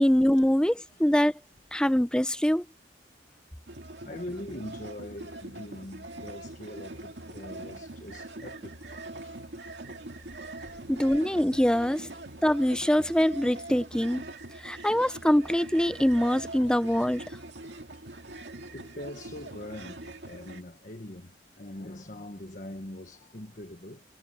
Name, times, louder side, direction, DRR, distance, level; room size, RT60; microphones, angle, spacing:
voice 1, 0.0-1.3 1.7-2.6 10.9-12.1 12.4-14.2 14.6-17.4, equal, 5° left, 0.6 m, -24 dB
sound 1, 3.7-20.6, right 2 dB, 75° right, 2.2 m, -43 dB
voice 2, 4.0-9.5 10.2-10.3 10.6-10.8 14.8-14.9 17.6-17.7 18.7-24.0, left 1 dB, 45° left, 1.4 m, -43 dB
head